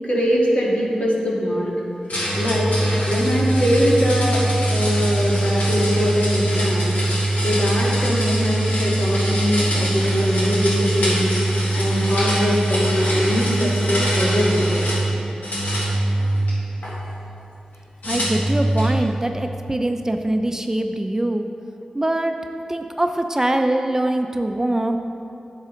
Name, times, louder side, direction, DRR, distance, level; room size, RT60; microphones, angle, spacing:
voice 1, 0.0-1.7 2.3-2.7 3.0-4.5 4.7-6.9 7.4-11.3 11.7-14.9, equal, 60° left, -5 dB, 1.9 m, -22 dB
sound 1, 2.1-15.1 15.4-16.9 18.0-19.0, right 1 dB, 85° left, 1.8 m, -22 dB
voice 2, 18.0-21.5 21.9-22.3 22.7-25.0, right 1 dB, 20° right, 5 dB, 0.5 m, -23 dB
10.0 x 7.4 x 3.1 m, 2.8 s
cardioid pair, 50°, 3 cm